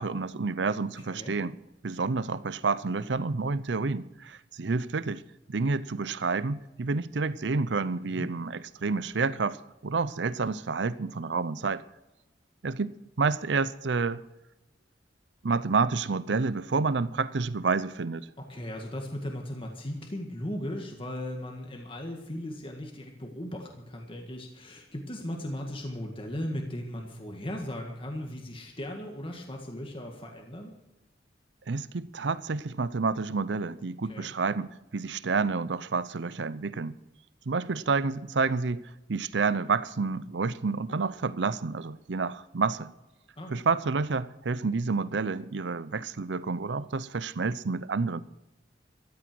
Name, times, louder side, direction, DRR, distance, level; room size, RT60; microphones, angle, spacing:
voice 1, 0.0-1.6 1.8-5.2 5.5-11.8 12.6-14.2 15.4-18.3 31.7-37.0 37.5-42.9 43.5-48.2, right 4 dB, 80° right, 0.6 m, -29 dB
voice 2, 1.1-1.4 8.0-8.3 18.4-30.7 34.1-34.3 43.4-43.6, left 1 dB, 30° left, 1.8 m, -37 dB
14.0 x 12.5 x 6.2 m
head